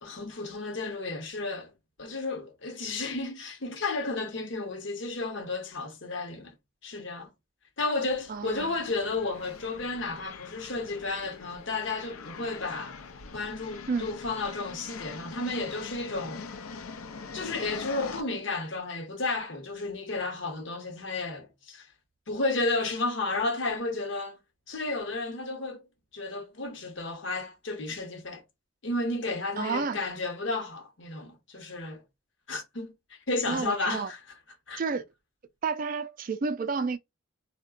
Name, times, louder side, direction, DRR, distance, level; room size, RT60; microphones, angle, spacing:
voice 1, 0.0-1.7 2.0-6.5 6.8-7.3 7.8-13.0 13.3-16.5 17.3-21.9 22.3-24.4 24.7-25.8 26.1-28.4 28.8-32.0 32.5-34.2 34.7-34.8, left 3 dB, 60° left, 0.9 m, -32 dB
sound 1, 8.1-18.2, left 5 dB, 85° left, 0.5 m, -43 dB
voice 2, 8.3-8.7 13.9-14.1 29.6-30.0 33.5-34.1 34.8-35.0 35.6-37.0, right 4 dB, 40° right, 0.3 m, -30 dB
3.7 x 2.2 x 2.3 m
head